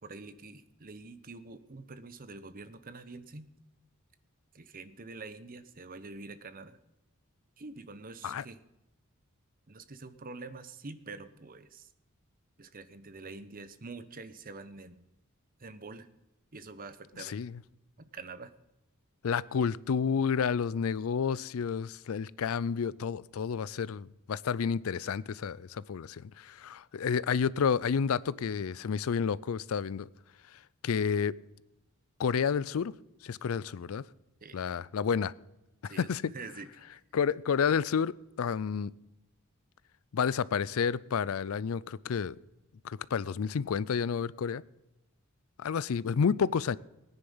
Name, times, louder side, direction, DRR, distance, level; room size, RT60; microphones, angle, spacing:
voice 1, 0.0-3.5 4.5-6.8 7.6-8.6 9.7-11.9 12.6-15.0 15.6-16.1 16.5-17.4 18.0-18.5 34.4-34.6 35.8-36.7, right 3 dB, 40° right, 0.9 m, -46 dB
voice 2, 17.2-17.5 19.2-30.1 30.8-31.3 32.2-32.9 33.2-34.0 34.5-35.3 35.8-36.2 37.1-38.9 40.1-42.3 42.8-44.6 45.6-46.8, left 6 dB, 70° left, 0.4 m, -30 dB
19.0 x 9.9 x 5.5 m
head